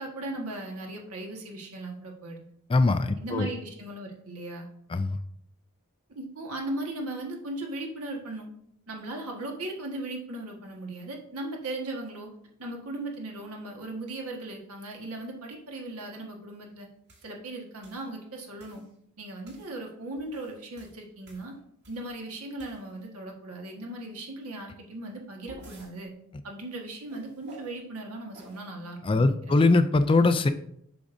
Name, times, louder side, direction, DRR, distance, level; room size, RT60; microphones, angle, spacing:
voice 1, 0.0-2.4 3.2-4.7 6.1-8.5 8.9-12.3 12.6-16.9 17.2-18.8 19.2-21.5 21.9-26.1 26.4-29.3, right 2 dB, 75° right, 1 dB, 1.5 m, -37 dB
voice 2, 2.7-3.5 4.9-5.2 29.0-30.5, left 3 dB, 25° left, 11 dB, 0.4 m, -22 dB
sound 1, 17.1-17.3 17.8-18.1 18.6-18.9 19.4-19.7 20.2-22.1 22.6-23.1 25.0-25.9 27.1-27.8 28.3-28.7, right 1 dB, 50° right, 2.5 m, -52 dB
8.5 x 6.1 x 2.6 m, 0.71 s
head